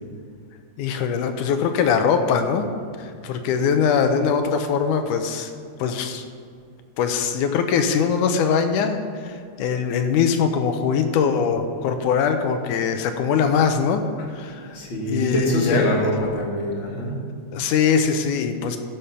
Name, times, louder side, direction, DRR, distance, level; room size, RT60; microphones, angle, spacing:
voice 1, 0.8-2.7 3.0-5.5 5.8-6.3 7.0-14.0 14.4-14.8 15.1-15.8 17.5-18.8, left 6 dB, 80° left, 7 dB, 2.2 m, -22 dB
voice 2, 14.7-17.2, left 1 dB, 45° left, -1 dB, 2.1 m, -23 dB
13.5 x 6.2 x 5.6 m, 2.3 s
omnidirectional pair, 3.7 m